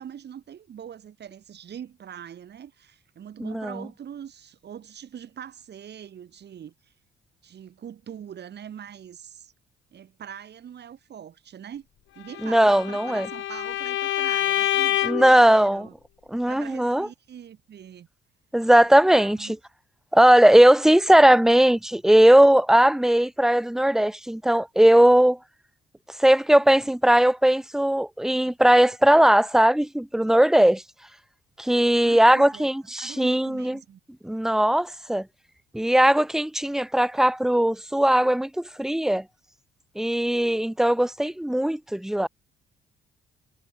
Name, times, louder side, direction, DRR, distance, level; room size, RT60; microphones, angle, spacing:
voice 1, 0.0-6.7 7.4-9.5 9.9-11.9 12.1-15.9 16.5-18.1 19.1-19.6 31.9-32.7 33.0-34.0, right 9 dB, 60° right, 3.1 m, -42 dB
voice 2, 3.4-3.8 12.4-13.3 15.0-15.9 16.3-17.1 18.5-19.6 20.1-25.4 26.2-30.8 31.6-33.8 34.2-35.3 35.7-39.2 40.0-42.3, right 1 dB, ahead, 0.5 m, -19 dB
Bowed string instrument, 12.3-15.4, left 14 dB, 80° left, 1.6 m, -26 dB
cardioid pair, 90°, 20 cm